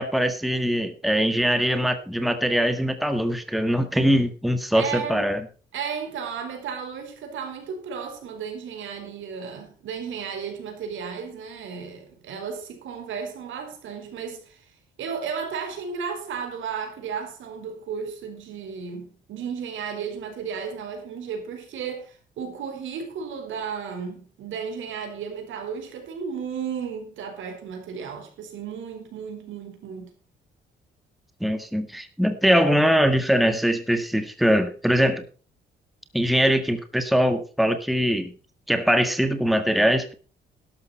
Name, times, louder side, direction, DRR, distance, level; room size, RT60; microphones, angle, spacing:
voice 1, 0.0-5.4 31.4-35.2 36.1-38.3 38.7-40.1, equal, ahead, 1.6 m, -22 dB
voice 2, 4.7-5.3 5.7-14.7 15.0-30.1, right 6 dB, 80° right, 4.8 m, -34 dB
12.5 x 12.0 x 4.3 m
cardioid pair, 90°, 20 cm